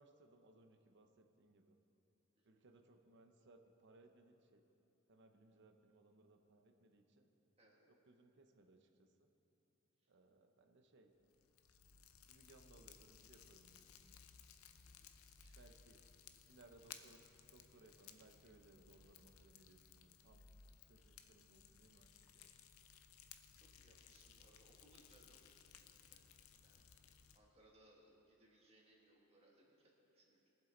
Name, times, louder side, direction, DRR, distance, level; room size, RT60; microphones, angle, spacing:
voice 1, 0.0-1.8 2.4-4.6 5.1-7.3 7.9-9.3 10.1-11.1 12.3-14.2 15.6-16.0 16.5-17.2 17.5-20.4 20.9-22.5, right 2 dB, 55° right, 5 dB, 0.8 m, -67 dB
voice 2, 2.3-2.6 7.6-7.9 10.0-10.1 14.8-15.1 15.4-15.6 23.5-26.2 26.6-26.8 27.3-30.5, right 1 dB, 30° right, -2 dB, 1.8 m, -70 dB
Fire, 11.2-27.4, left 7 dB, 90° left, 0.6 m, -62 dB
22.0 x 7.5 x 3.9 m, 3.0 s
head